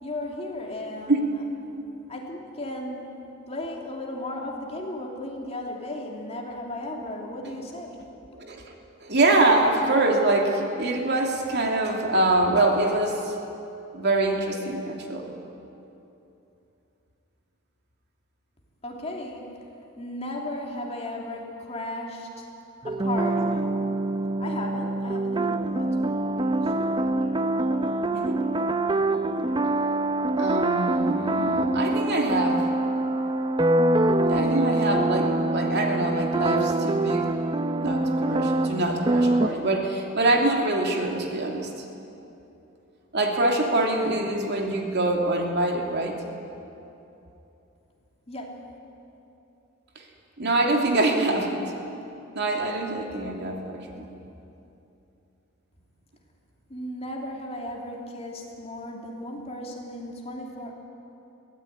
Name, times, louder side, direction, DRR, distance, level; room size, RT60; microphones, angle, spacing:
voice 1, 0.0-1.3 2.1-8.0 18.8-19.7 20.0-22.5 22.9-23.7 24.4-26.9 48.3-48.6 56.7-60.7, left 1 dB, 30° left, -1 dB, 3.0 m, -35 dB
voice 2, 9.0-13.3 13.9-15.3 28.1-28.4 30.4-32.7 34.3-37.3 37.8-41.7 43.1-46.2 49.9-50.0 50.4-51.7 52.3-54.1, right 2 dB, 50° right, 1 dB, 2.7 m, -24 dB
sound 1, 22.8-39.5, right 2 dB, 20° right, 0.7 m, -25 dB
22.5 x 17.0 x 9.4 m, 2.9 s
head